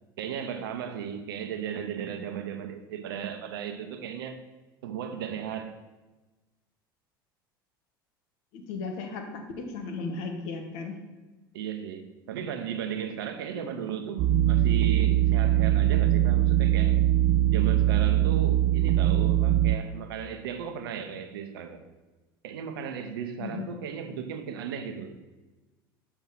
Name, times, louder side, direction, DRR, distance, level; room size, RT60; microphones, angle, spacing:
voice 1, 0.2-4.4 4.8-5.8 11.5-17.0 17.5-21.8 22.4-25.1, right 8 dB, 75° right, 0.8 m, -36 dB
voice 2, 8.5-11.0 23.4-23.7, left 4 dB, 65° left, 1.3 m, -36 dB
sound 1, 14.2-19.8, right 13 dB, 60° right, 0.4 m, -22 dB
7.4 x 4.5 x 5.7 m
hypercardioid pair, 75°, 12 cm